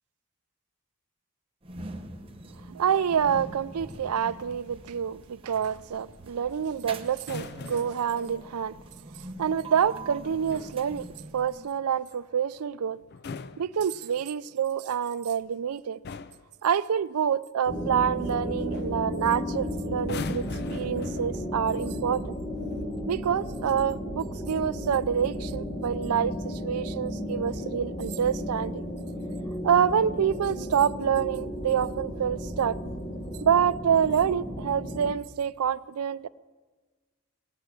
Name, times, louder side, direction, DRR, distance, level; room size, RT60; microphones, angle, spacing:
sound 1, 1.6-11.8, right 2 dB, 25° right, 0.8 m, -44 dB
voice 1, 2.7-8.7 9.4-11.1 11.3-13.0 13.6-16.0 16.6-22.3 23.1-28.7 29.6-32.8 33.4-36.3, right 8 dB, 90° right, 0.4 m, -27 dB
sound 2, 7.2-8.1 10.2-10.9 13.0-14.4 15.4-15.7 16.0-16.5 18.2-18.4 18.7-19.0 20.0-21.6 22.6-22.8, left 4 dB, 45° left, 0.4 m, -41 dB
sound 3, 17.7-35.1, equal, 25° left, 1.2 m, -34 dB
19.0 x 8.9 x 7.7 m
head